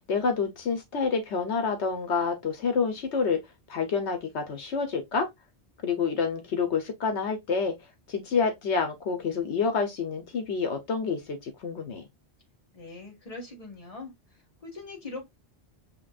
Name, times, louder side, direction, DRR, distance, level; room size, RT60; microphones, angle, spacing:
voice 1, 0.0-3.4 3.7-5.3 5.8-7.7 8.1-12.0, left 5 dB, 80° left, 1.2 m, -28 dB
voice 2, 12.7-14.1 14.6-15.3, left 3 dB, 30° left, 1.8 m, -41 dB
7.0 x 2.9 x 2.4 m
omnidirectional pair, 1.1 m